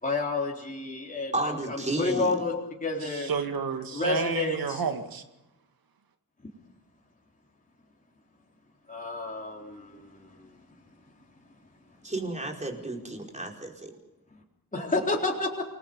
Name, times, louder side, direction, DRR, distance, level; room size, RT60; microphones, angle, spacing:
voice 1, 0.0-2.5 2.8-3.3 3.9-4.8 8.9-10.5 14.7-15.6, left 3 dB, 25° left, -1 dB, 4.0 m, -30 dB
voice 2, 1.3-2.3 12.0-13.9, right 2 dB, 20° right, 1 dB, 4.8 m, -32 dB
voice 3, 3.0-5.2, right 5 dB, 75° right, 7 dB, 2.1 m, -30 dB
29.0 x 21.0 x 5.4 m, 0.93 s
wide cardioid pair, 95°, 35 cm